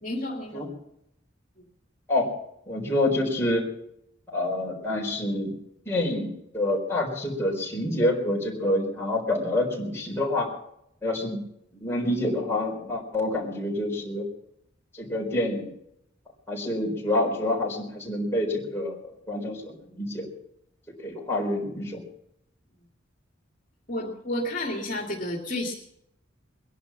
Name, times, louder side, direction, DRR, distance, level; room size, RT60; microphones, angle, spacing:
voice 1, 0.0-0.6 1.6-1.7 23.9-25.7, left 1 dB, 45° left, 0 dB, 2.5 m, -31 dB
voice 2, 2.7-3.7 4.3-5.5 5.8-6.3 6.5-10.5 11.0-11.4 11.7-14.3 14.9-15.7 16.5-19.0 19.3-20.3 21.0-22.0, left 1 dB, 15° left, -2 dB, 4.4 m, -27 dB
22.0 x 11.0 x 5.8 m, 0.77 s
head